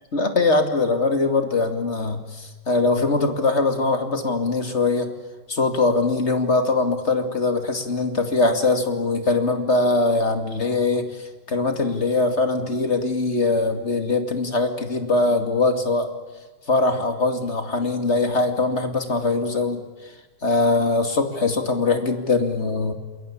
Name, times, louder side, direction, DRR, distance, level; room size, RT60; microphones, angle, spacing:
voice 1, 0.1-5.1 5.5-16.1 16.7-19.8 20.4-22.9, left 3 dB, 35° left, 7 dB, 2.6 m, -22 dB
28.0 x 22.0 x 8.7 m, 1.3 s
omnidirectional pair, 2.2 m